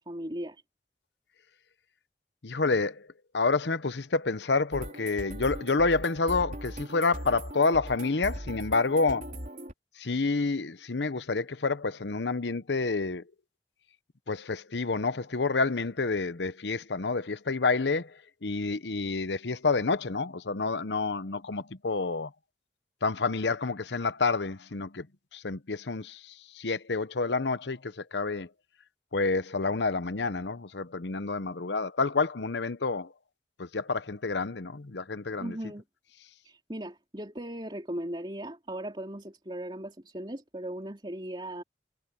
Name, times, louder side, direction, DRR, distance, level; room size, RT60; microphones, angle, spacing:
voice 1, 0.1-0.6 35.4-35.8 36.4-41.6, right 1 dB, 25° right, 3.4 m, -38 dB
voice 2, 2.4-3.1 3.3-9.3 10.0-13.2 14.3-18.1 18.4-22.3 23.0-25.1 25.3-28.5 29.1-33.1 33.6-35.6, left 3 dB, 80° left, 0.9 m, -28 dB
sound 1, 4.7-9.7, right 1 dB, 45° right, 4.1 m, -40 dB
head